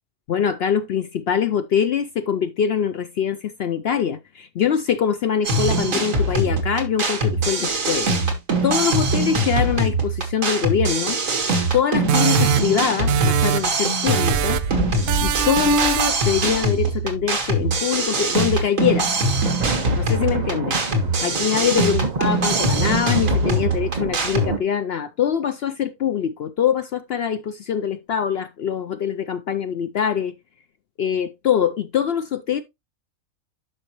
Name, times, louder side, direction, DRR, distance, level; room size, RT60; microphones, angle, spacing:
voice 1, 0.3-8.1 8.6-11.2 11.7-14.6 15.2-19.1 20.0-20.8 21.2-30.3 31.0-32.6, left 8 dB, 65° left, 0.6 m, -23 dB
sound 1, 5.4-24.5, right 2 dB, 65° right, 2.1 m, -23 dB
sound 2, 12.1-13.8 14.1-14.8 15.1-16.3, right 10 dB, 90° right, 1.1 m, -23 dB
sound 3, 14.3-17.9 19.1-24.6, right 3 dB, 35° right, 0.9 m, -29 dB
11.0 x 5.5 x 2.9 m
omnidirectional pair, 1.5 m